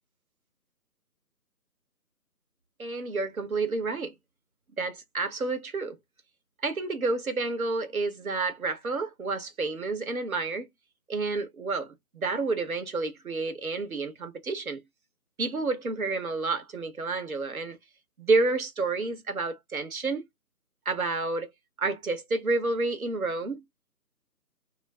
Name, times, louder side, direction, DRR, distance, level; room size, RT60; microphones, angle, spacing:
voice 1, 2.8-4.1 4.8-6.0 6.6-10.7 11.1-14.8 15.4-17.8 18.2-20.2 20.8-21.5 21.8-23.6, right 3 dB, 60° right, 1.2 m, -29 dB
3.2 x 3.0 x 2.4 m
figure-of-eight pair, 155°, 49 cm